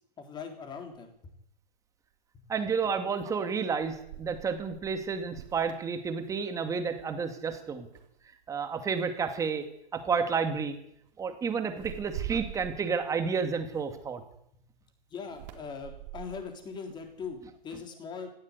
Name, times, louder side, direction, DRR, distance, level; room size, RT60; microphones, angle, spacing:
voice 1, 0.2-1.3 2.3-2.4 15.1-18.3, left 5 dB, 15° left, 5 dB, 3.8 m, -41 dB
sound 1, 0.9-1.0 3.2-6.8 7.2-7.5 7.9-8.6 9.4-9.6 10.0-10.3 11.7-14.3 15.2-17.6, right 12 dB, 40° right, 3.6 m, -45 dB
voice 2, 2.5-7.9 8.5-9.7 9.9-10.8 11.2-14.2, right 5 dB, 10° right, 7 dB, 2.3 m, -31 dB
18.0 x 15.0 x 9.8 m, 0.73 s
hypercardioid pair, 155°, 32 cm